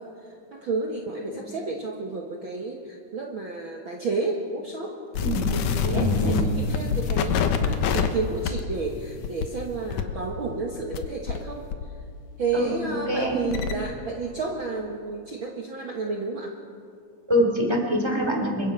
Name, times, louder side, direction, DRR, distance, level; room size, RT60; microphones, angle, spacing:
voice 1, 0.0-5.0 5.5-11.7 12.4-16.6, right 3 dB, 45° right, 0 dB, 2.0 m, -31 dB
sound 1, 5.1-11.4 11.7-13.7, left 6 dB, 85° left, 2.7 m, -27 dB
voice 2, 5.2-5.5 5.9-6.4 12.5-12.8 13.1-13.4 17.3-18.7, equal, 10° right, 2 dB, 2.9 m, -24 dB
27.5 x 23.5 x 5.6 m, 2.3 s
omnidirectional pair, 3.6 m